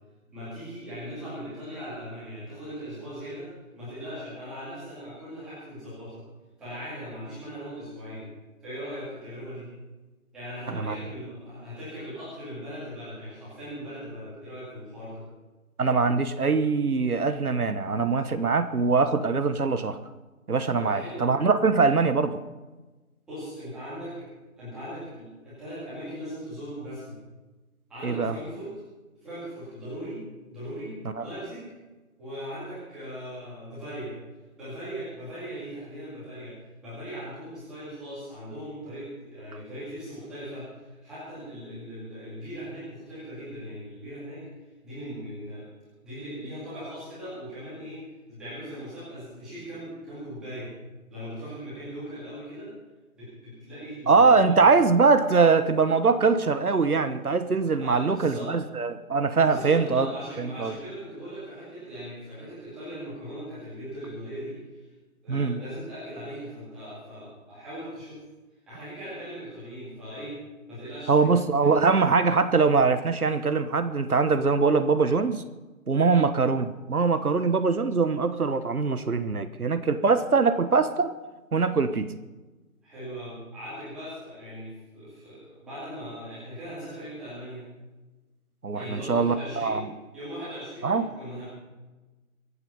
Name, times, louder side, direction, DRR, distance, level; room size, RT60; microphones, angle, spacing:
voice 1, 0.3-3.5 3.7-6.2 6.6-8.3 8.6-9.7 10.3-15.2 20.8-21.3 21.8-21.9 23.3-24.1 24.6-27.2 27.9-28.7 29.2-30.2 30.5-31.6 32.2-34.1 34.5-36.5 36.8-40.7 41.0-44.5 44.8-45.7 46.0-48.0 48.3-50.7 51.1-52.7 53.2-54.6 57.8-58.5 59.4-64.8 65.2-68.2 68.7-70.3 70.7-71.8 76.0-76.2 82.8-87.6 88.7-89.8 90.1-91.5, equal, ahead, -13 dB, 2.1 m, -39 dB
voice 2, 15.8-20.0 20.5-22.4 28.0-28.3 31.2-31.3 54.1-60.1 60.4-60.7 65.3-65.6 71.1-75.4 75.9-81.1 81.5-82.1 88.6-89.8 90.8-91.0, right 4 dB, 90° right, 10 dB, 1.2 m, -22 dB
23.0 x 8.3 x 5.5 m, 1.2 s
figure-of-eight pair, 170°, 43 cm